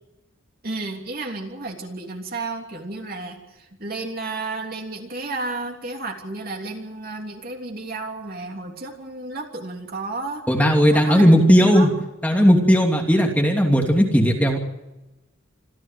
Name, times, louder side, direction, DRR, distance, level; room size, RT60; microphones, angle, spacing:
voice 1, 0.6-3.4 3.8-10.4 10.9-11.9, right 2 dB, 45° right, 3 dB, 3.2 m, -32 dB
voice 2, 10.5-11.9 12.2-14.6, equal, 5° left, 1 dB, 2.9 m, -16 dB
27.0 x 14.5 x 7.7 m, 1.0 s
head